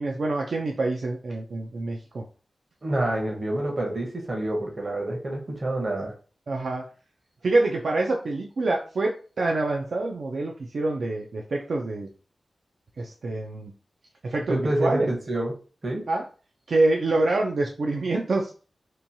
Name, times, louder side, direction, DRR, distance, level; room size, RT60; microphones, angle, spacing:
voice 1, 0.0-2.2 6.5-6.9 7.4-12.1 13.0-13.7 14.2-15.1 16.1-16.2 16.7-18.5, right 2 dB, 70° right, 0 dB, 0.3 m, -26 dB
voice 2, 2.8-6.1 14.5-15.5 15.8-16.0, right 1 dB, 40° right, 1 dB, 0.8 m, -27 dB
2.9 x 2.2 x 2.6 m, 0.37 s
wide cardioid pair, 115°, 0 cm